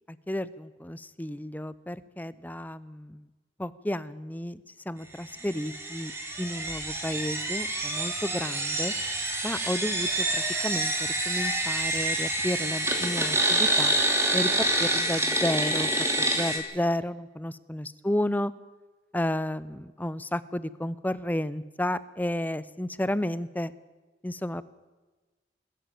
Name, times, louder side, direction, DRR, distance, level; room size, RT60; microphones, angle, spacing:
voice 1, 0.1-3.3 3.6-6.1 6.4-8.9 9.4-13.9 14.3-15.9 16.2-18.5 19.1-23.7 24.2-24.6, left 1 dB, 10° left, 17 dB, 0.6 m, -32 dB
sound 1, 5.4-16.6, right 1 dB, 15° right, 3.1 m, -27 dB
21.0 x 14.0 x 9.0 m, 1.2 s
head